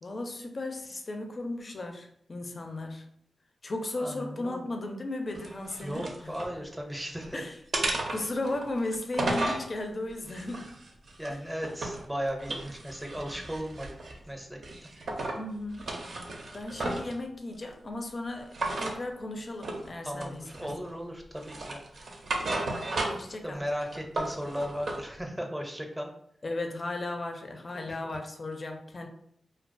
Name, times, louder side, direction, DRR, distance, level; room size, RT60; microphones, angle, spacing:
voice 1, 0.0-3.1 3.6-6.3 7.3-7.6 8.1-10.7 11.3-11.4 15.4-15.9 16.5-20.7 22.5-23.7 26.4-29.1, left 2 dB, 45° left, 4 dB, 0.4 m, -36 dB
voice 2, 4.0-4.7 5.8-7.4 8.2-8.3 11.2-14.0 14.3-14.6 20.0-21.8 23.4-26.1 27.7-28.1, equal, 10° right, 2 dB, 0.5 m, -36 dB
sound 1, 5.3-6.5 7.0-7.3 7.7-9.7 10.3-12.0 12.4-14.2 14.6-15.4 15.7-17.2 18.5-19.0 19.6-19.9 20.2-20.9 21.4-23.3 23.7-25.0, right 2 dB, 65° right, 0.4 m, -34 dB
2.2 x 2.2 x 2.5 m, 0.68 s
cardioid pair, 60°, 0 cm